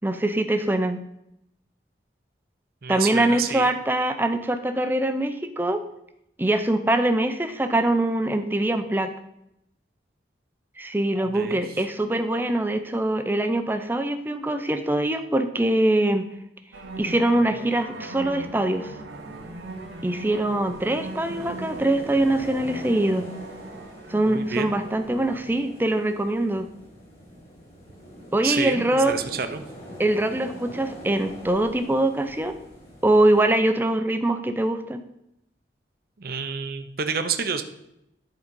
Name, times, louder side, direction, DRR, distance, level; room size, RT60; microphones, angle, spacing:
voice 1, 0.0-1.0 2.9-5.8 6.4-9.1 10.8-16.3 17.0-18.9 20.0-23.3 24.1-26.7 28.3-29.2 30.0-32.5 33.0-35.0, right 1 dB, 10° right, 8 dB, 0.5 m, -23 dB
voice 2, 2.8-3.7 11.2-11.8 24.3-24.7 28.4-29.6 36.2-37.6, right 6 dB, 50° right, 8 dB, 0.6 m, -29 dB
sound 1, 16.7-25.5, right 2 dB, 90° right, 1.0 m, -40 dB
sound 2, 19.1-33.5, equal, 35° left, 2.8 m, -43 dB
11.0 x 3.9 x 5.3 m, 0.80 s
head